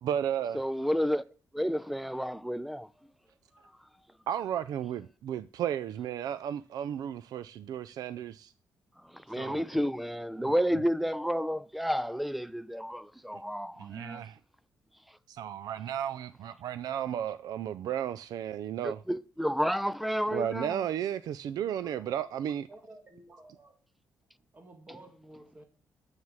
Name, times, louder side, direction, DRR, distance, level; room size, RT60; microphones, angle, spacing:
voice 1, 0.0-0.6 4.3-8.5 9.4-9.6 10.4-10.5 13.3-13.4 13.8-14.4 15.3-19.0 20.3-22.7, right 10 dB, 70° right, 0.4 m, -34 dB
voice 2, 0.5-1.2 1.5-2.9 9.1-14.2 18.8-20.8, equal, ahead, 0.4 m, -31 dB
voice 3, 21.8-23.8 24.5-25.6, right 2 dB, 25° right, 2.1 m, -53 dB
9.5 x 7.3 x 7.4 m
cardioid pair, 135°, 7 cm